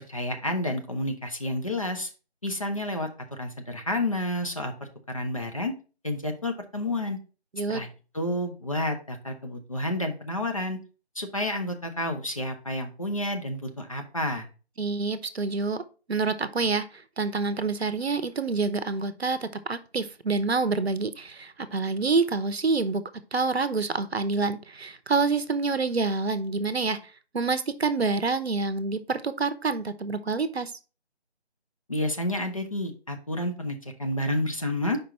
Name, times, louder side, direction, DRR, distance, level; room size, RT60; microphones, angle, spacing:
voice 1, 0.1-2.1 2.4-4.7 5.1-5.7 6.0-7.2 7.7-7.9 8.1-10.8 11.2-14.5 31.9-35.0, left 1 dB, 30° left, 0.7 m, -30 dB
voice 2, 14.8-15.8 16.1-23.0 23.3-27.0 27.3-30.7, right 4 dB, 70° right, 0.7 m, -27 dB
5.1 x 4.3 x 4.3 m
figure-of-eight pair, 160°, 33 cm